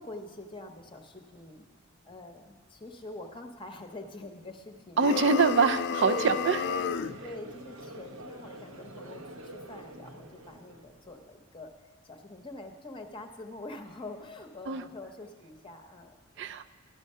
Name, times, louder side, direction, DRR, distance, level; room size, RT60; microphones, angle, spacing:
voice 1, 0.0-1.6 2.0-5.5 6.0-6.9 7.2-11.7 12.0-16.5, left 2 dB, 25° left, 4 dB, 0.8 m, -44 dB
sound 1, 5.0-7.2, left 6 dB, 55° left, 0.4 m, -32 dB
voice 2, 5.0-6.6 14.7-14.8 16.4-16.6, right 5 dB, 60° right, 10 dB, 0.4 m, -24 dB
Conversation / Crowd, 6.0-11.2, right 1 dB, 85° right, 1.0 m, -47 dB
12.5 x 10.5 x 5.5 m, 1.4 s
head